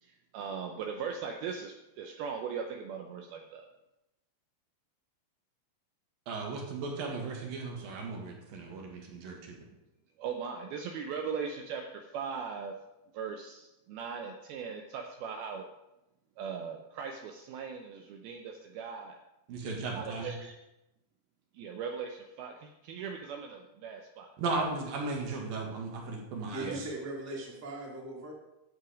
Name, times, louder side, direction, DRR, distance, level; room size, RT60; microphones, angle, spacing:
voice 1, 0.0-3.7 10.2-12.7 13.1-15.7 16.4-19.2 19.9-20.6 21.5-24.3 26.6-26.8, right 6 dB, 85° right, 3 dB, 2.1 m, -39 dB
voice 2, 6.3-9.6 19.5-20.3 24.4-26.7, right 3 dB, 60° right, 0 dB, 3.0 m, -36 dB
voice 3, 26.5-28.3, right 2 dB, 15° right, -3 dB, 0.5 m, -39 dB
11.5 x 7.6 x 5.0 m, 0.93 s
omnidirectional pair, 5.3 m